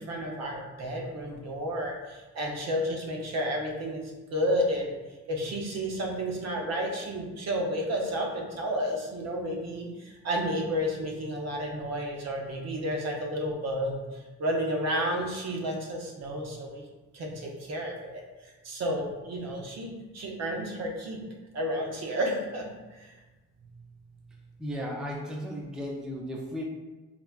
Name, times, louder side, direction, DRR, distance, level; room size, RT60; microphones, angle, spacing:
voice 1, 0.0-5.0 5.3-16.8 17.1-21.2 21.5-23.1, equal, 60° right, 0 dB, 0.7 m, -31 dB
voice 2, 24.6-26.6, equal, ahead, -1 dB, 0.4 m, -35 dB
4.0 x 2.1 x 2.3 m, 1.2 s
cardioid pair, 90°, 30 cm